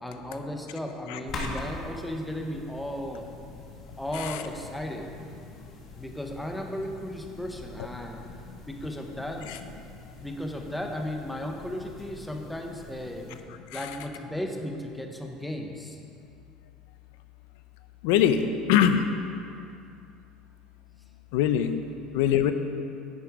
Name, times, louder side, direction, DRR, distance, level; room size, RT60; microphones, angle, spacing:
voice 1, 0.0-3.2 4.0-5.1 6.0-8.2 8.7-9.6 10.1-13.3 13.7-16.0, left 1 dB, 5° left, 2 dB, 0.8 m, -35 dB
sound 1, 1.3-13.4, left 2 dB, 35° left, 1.8 m, -44 dB
voice 2, 18.0-18.4 18.7-19.0 21.3-21.8 22.1-22.5, left 10 dB, 80° left, 9 dB, 0.7 m, -22 dB
10.5 x 9.0 x 4.8 m, 2.5 s
cardioid pair, 175°, 0 cm